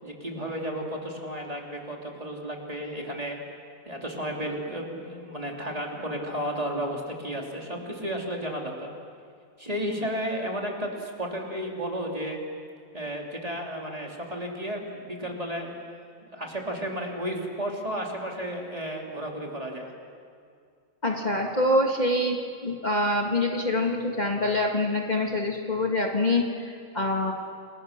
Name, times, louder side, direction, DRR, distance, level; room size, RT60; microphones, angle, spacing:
voice 1, 0.0-3.4 3.8-8.9 9.6-12.4 12.9-15.8 16.3-19.9, equal, 25° right, 0 dB, 2.9 m, -33 dB
voice 2, 21.0-27.3, left 1 dB, 30° left, 1 dB, 1.9 m, -25 dB
29.0 x 21.5 x 6.6 m, 2.3 s
omnidirectional pair, 1.4 m